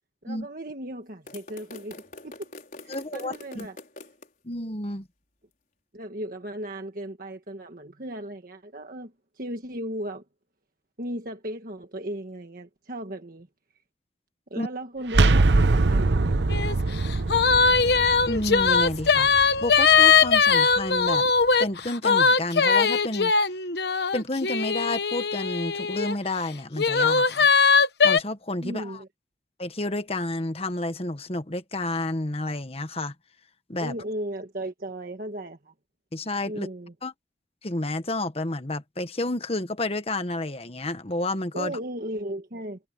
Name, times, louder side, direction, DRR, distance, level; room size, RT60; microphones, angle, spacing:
voice 1, 0.2-2.5 2.8-3.8 5.9-10.2 11.0-13.5 14.5-16.7 28.6-29.1 33.8-35.7 36.4-36.9 41.5-42.8, right 1 dB, 50° right, 1.6 m, -36 dB
sound 1, 1.3-4.3, left 2 dB, 50° left, 5.3 m, -44 dB
voice 2, 2.9-3.7 4.4-5.1 14.6-14.7 18.3-21.3 21.6-23.3 24.1-27.5 28.0-29.0 29.6-33.1 33.7-33.9 36.1-36.7 37.0-37.1 37.6-41.7, left 2 dB, 35° left, 1.4 m, -30 dB
sound 2, 15.1-20.8, right 3 dB, 80° right, 0.8 m, -24 dB
sound 3, 16.5-16.7 17.0-26.1 26.7-28.2, left 5 dB, 65° left, 1.2 m, -20 dB
head